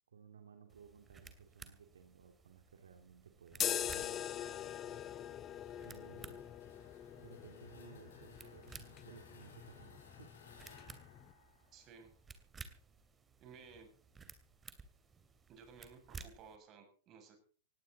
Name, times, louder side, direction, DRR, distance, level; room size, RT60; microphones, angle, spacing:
voice 1, 0.1-4.3 5.8-6.5 7.2-10.3, right 7 dB, 75° right, 5 dB, 2.5 m, -58 dB
sound 1, 0.7-16.6, right 5 dB, 15° right, 2.6 m, -57 dB
sound 2, 3.5-11.3, left 10 dB, 25° left, 0.7 m, -43 dB
sound 3, 5.6-12.3, left 5 dB, 70° left, 6.1 m, -62 dB
voice 2, 11.7-12.1 13.4-13.9 15.5-17.4, right 5 dB, 35° right, 4 dB, 7.0 m, -57 dB
19.0 x 17.0 x 4.1 m, 0.41 s
hypercardioid pair, 110°, 0 cm